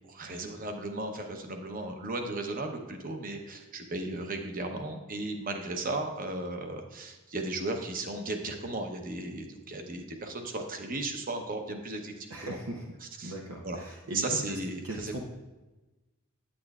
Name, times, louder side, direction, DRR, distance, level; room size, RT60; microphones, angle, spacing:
voice 1, 0.1-12.6 13.2-13.3 13.6-13.8 14.1-15.2, right 2 dB, 40° right, 4 dB, 0.8 m, -35 dB
voice 2, 12.3-12.9 13.2-14.6 14.8-15.2, right 2 dB, 85° right, 0 dB, 0.8 m, -39 dB
8.7 x 8.7 x 2.4 m, 1.1 s
head